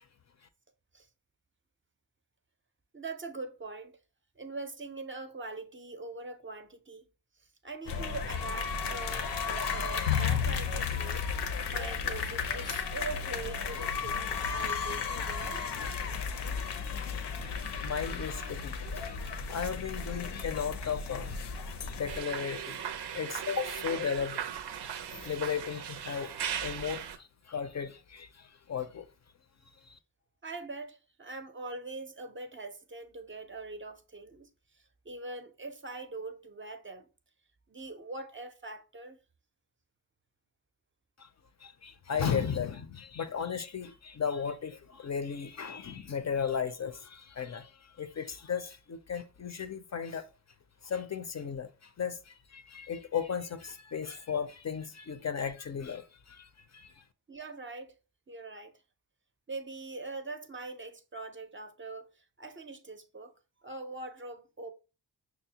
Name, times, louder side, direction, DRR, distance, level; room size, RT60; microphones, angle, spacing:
voice 1, 2.9-4.0 4.4-7.1 7.4-15.7 30.4-37.1 37.7-39.2 57.3-57.9 58.3-58.8 59.5-63.3 63.6-64.7, right 3 dB, 30° right, 0.5 m, -43 dB
sound 1, 7.9-22.2, left 6 dB, 85° left, 0.7 m, -34 dB
voice 2, 17.7-19.2 19.5-21.4 21.9-29.1 29.9-30.0 41.2-41.3 41.6-50.3 50.8-57.0, left 7 dB, 45° left, 0.4 m, -36 dB
sound 2, 22.1-27.2, right 8 dB, 85° right, 0.5 m, -38 dB
6.1 x 2.0 x 2.8 m
wide cardioid pair, 85°, 40 cm